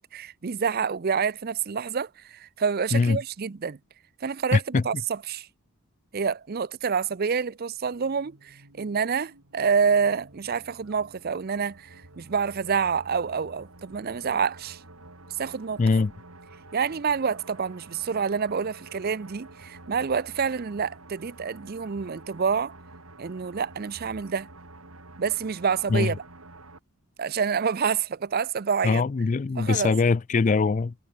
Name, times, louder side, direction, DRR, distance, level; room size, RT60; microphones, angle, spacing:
voice 1, 0.0-3.8 4.2-5.5 6.1-14.8 15.4-15.8 16.7-22.7 23.2-24.5 25.2-26.2 27.2-29.0 29.6-29.9, right 6 dB, 45° right, 0.5 m, -27 dB
voice 2, 4.5-4.8 15.8-16.1 25.9-26.1 28.8-30.9, left 4 dB, 35° left, 0.3 m, -22 dB
sound 1, 7.8-26.8, right 2 dB, 75° right, 4.5 m, -49 dB
head